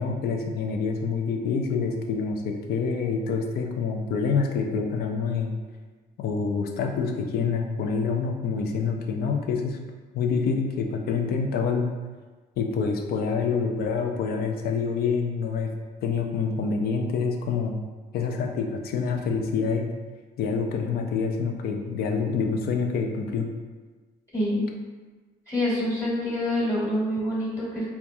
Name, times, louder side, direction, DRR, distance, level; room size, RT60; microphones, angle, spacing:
voice 1, 0.0-5.5 6.2-9.8 10.1-11.9 12.6-15.7 16.0-17.8 18.1-19.9 20.4-23.5, left 5 dB, 65° left, 3 dB, 0.5 m, -27 dB
voice 2, 24.3-24.7 25.5-27.8, left 1 dB, 15° left, -9 dB, 1.3 m, -26 dB
4.5 x 2.3 x 2.7 m, 1.3 s
cardioid pair, 110°, 17 cm